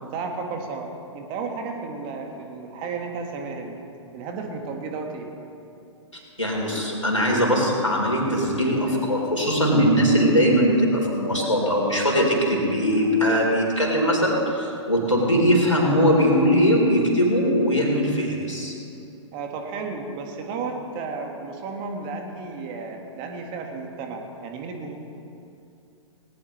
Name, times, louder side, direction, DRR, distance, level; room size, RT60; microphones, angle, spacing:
voice 1, 0.0-3.8 4.1-5.3 19.3-24.9, right 4 dB, 30° right, 3 dB, 1.7 m, -33 dB
voice 2, 6.1-18.7, equal, 90° left, -2 dB, 4.1 m, -21 dB
19.0 x 18.5 x 3.3 m, 2.6 s
figure-of-eight pair, 110°, 16 cm